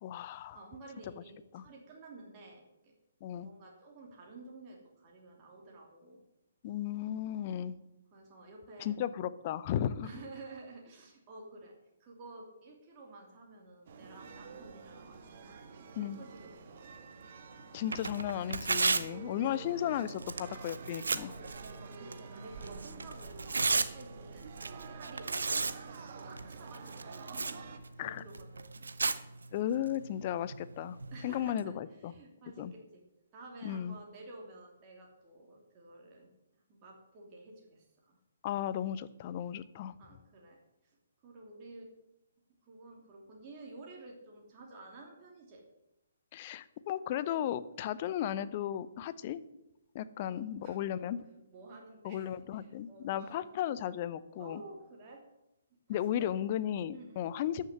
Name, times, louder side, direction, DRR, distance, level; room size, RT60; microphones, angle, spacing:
voice 1, 0.0-0.6 1.5-1.6 3.2-3.5 6.6-7.8 8.8-10.1 16.0-16.2 17.7-21.3 28.0-28.2 29.5-31.0 31.2-32.1 32.6-32.7 33.6-33.9 38.4-39.9 46.3-49.4 49.9-51.2 52.0-54.6 55.9-57.7, left 10 dB, 35° left, 15 dB, 0.6 m, -35 dB
voice 2, 0.5-2.9 3.3-6.2 7.5-7.7 8.1-9.0 10.0-11.7 12.0-16.9 19.1-19.7 21.4-24.5 24.8-25.7 26.2-27.7 27.9-28.9 31.1-33.0 33.3-36.3 36.7-38.2 40.0-40.6 40.8-41.0 41.2-41.9 42.6-45.6 50.3-51.1 51.5-53.5 54.4-55.2 55.9-56.3 56.9-57.3, right 2 dB, 25° right, -1 dB, 2.9 m, -52 dB
sound 1, 13.9-27.8, right 5 dB, 40° right, 1.4 m, -49 dB
Tearing, 17.8-31.6, right 4 dB, 65° right, 0.8 m, -37 dB
13.5 x 6.7 x 7.9 m, 0.89 s
figure-of-eight pair, 130°, 0 cm